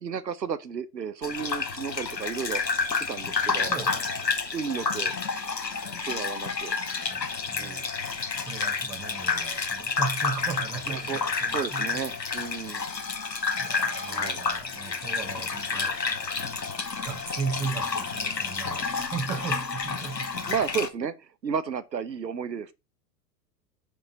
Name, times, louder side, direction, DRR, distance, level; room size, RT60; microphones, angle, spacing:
voice 1, 0.0-2.6 2.9-3.7 4.5-5.1 6.0-6.7 7.6-7.9 8.2-8.4 10.9-11.2 11.5-12.8 14.0-14.4 20.5-22.7, right 7 dB, 80° right, 1.0 m, -33 dB
Gurgling / Bathtub (filling or washing), 1.2-20.9, left 4 dB, 85° left, 1.1 m, -30 dB
voice 2, 7.1-7.8 8.4-12.0 13.6-16.0 17.0-20.5, right 5 dB, 5° right, 0.4 m, -36 dB
7.3 x 6.3 x 4.5 m
figure-of-eight pair, 95°, 49 cm